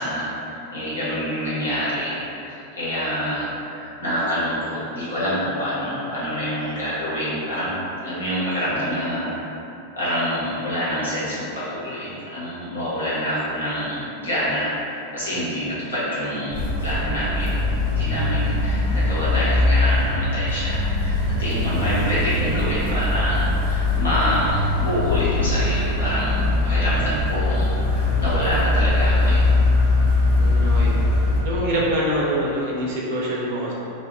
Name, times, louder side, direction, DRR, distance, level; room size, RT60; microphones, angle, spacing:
voice 1, 0.0-9.5 10.0-17.6 17.9-29.4, equal, 75° left, -11 dB, 1.2 m, -26 dB
sound 1, 16.5-31.4, left 2 dB, 35° left, 1.1 m, -21 dB
voice 2, 30.4-30.9 31.4-33.7, right 1 dB, 50° right, -5 dB, 0.6 m, -25 dB
2.7 x 2.6 x 3.4 m, 2.9 s
figure-of-eight pair, 90°, 0 cm